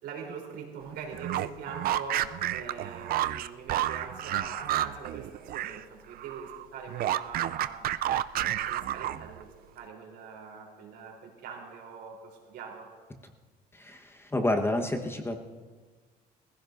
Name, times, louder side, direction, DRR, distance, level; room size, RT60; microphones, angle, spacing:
voice 1, 0.0-7.9 8.3-12.9, right 5 dB, 80° right, 0 dB, 3.6 m, -43 dB
not much meat, 1.1-5.8 6.1-9.4, right 13 dB, 60° right, 0.5 m, -30 dB
voice 2, 13.7-15.4, left 1 dB, 15° left, 3 dB, 1.2 m, -29 dB
22.5 x 15.5 x 2.6 m, 1.4 s
cardioid pair, 110°, 17 cm